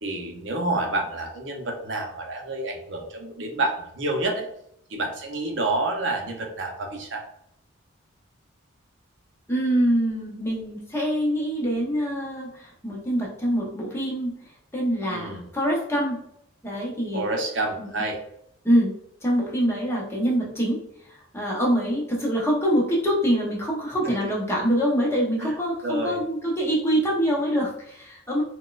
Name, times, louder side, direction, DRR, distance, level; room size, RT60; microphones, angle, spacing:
voice 1, 0.0-4.4 4.9-7.2 15.1-15.4 17.1-18.2 25.4-25.5 25.8-26.2, right 2 dB, 60° right, 2 dB, 0.6 m, -28 dB
voice 2, 9.5-16.2 16.6-17.3 17.8-18.0 18.6-18.9 19.2-28.4, equal, 10° left, -4 dB, 0.7 m, -25 dB
4.1 x 2.2 x 2.4 m, 0.74 s
head